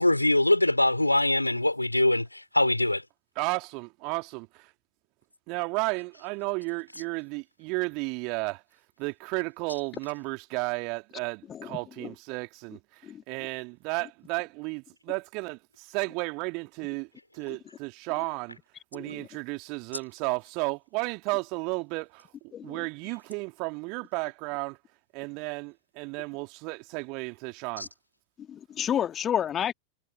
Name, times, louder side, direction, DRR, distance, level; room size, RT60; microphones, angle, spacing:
voice 1, 0.0-3.0 27.8-27.9, left 1 dB, 85° left, 3.7 m, -23 dB
voice 2, 3.4-4.7 5.5-8.6 9.0-17.1 17.3-18.6 18.9-22.3 22.6-24.8 25.1-27.9, right 30 dB, 45° right, 2.7 m, -33 dB
voice 3, 11.5-12.1 13.0-13.2 18.9-19.3 22.5-22.8 28.5-29.7, left 9 dB, 25° left, 1.8 m, -31 dB
figure-of-eight pair, 90°, 0 cm